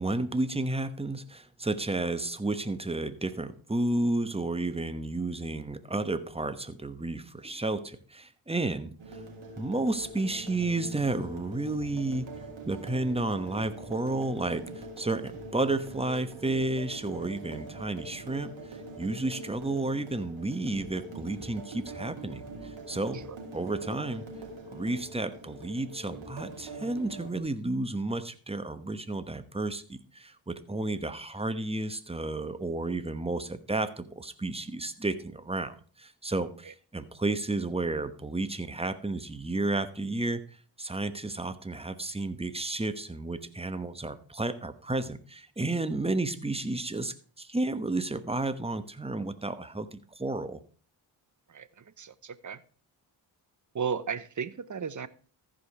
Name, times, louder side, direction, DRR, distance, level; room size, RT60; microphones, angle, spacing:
voice 1, 0.0-9.2 9.6-12.3 12.7-23.2 23.5-24.2 24.7-40.4 40.8-50.6, right 2 dB, 10° right, 11 dB, 1.0 m, -32 dB
sound 1, 9.0-27.4, right 2 dB, 75° right, 2.6 m, -43 dB
voice 2, 51.5-52.6 53.7-55.1, right 6 dB, 40° right, 16 dB, 0.8 m, -35 dB
14.5 x 5.2 x 4.9 m, 0.41 s
cardioid pair, 60°, 46 cm